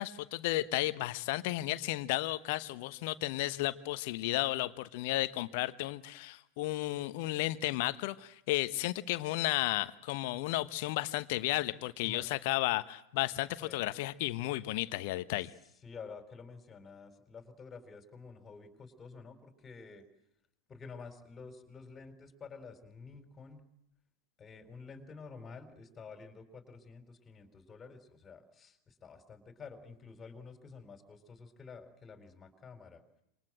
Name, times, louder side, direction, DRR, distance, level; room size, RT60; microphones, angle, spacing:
voice 1, 0.0-15.5, left 17 dB, 50° left, 13 dB, 1.1 m, -33 dB
voice 2, 15.8-20.1 20.7-23.7 24.4-33.0, left 5 dB, 20° left, 8 dB, 4.2 m, -50 dB
27.5 x 26.5 x 7.7 m, 0.79 s
figure-of-eight pair, 90°, 0 cm